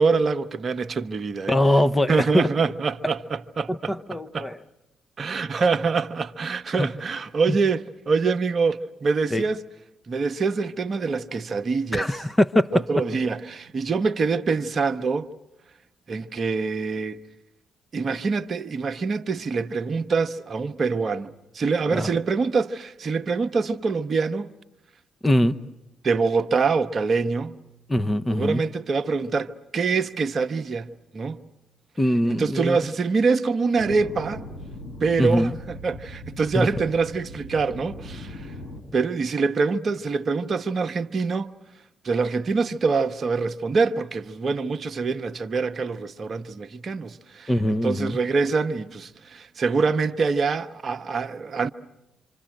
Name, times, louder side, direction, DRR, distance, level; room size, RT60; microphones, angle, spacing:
voice 1, 0.0-1.6 2.1-4.5 5.2-9.6 10.1-12.2 12.7-15.3 16.1-17.2 17.9-24.5 26.0-27.6 28.3-31.4 32.3-34.4 35.0-38.5 38.9-41.5 42.0-51.7, right 4 dB, 45° right, 1.0 m, -25 dB
voice 2, 1.5-2.5 3.7-4.6 6.8-6.9 7.5-7.6 9.3-9.4 11.9-12.7 21.9-22.1 25.2-25.6 27.9-28.6 32.0-32.8 35.2-35.5 36.5-36.7 47.5-48.2, left 1 dB, 15° left, 1.0 m, -22 dB
sound 1, 33.8-38.8, left 1 dB, 90° left, 3.7 m, -39 dB
27.0 x 26.0 x 7.8 m
figure-of-eight pair, 45°, 0 cm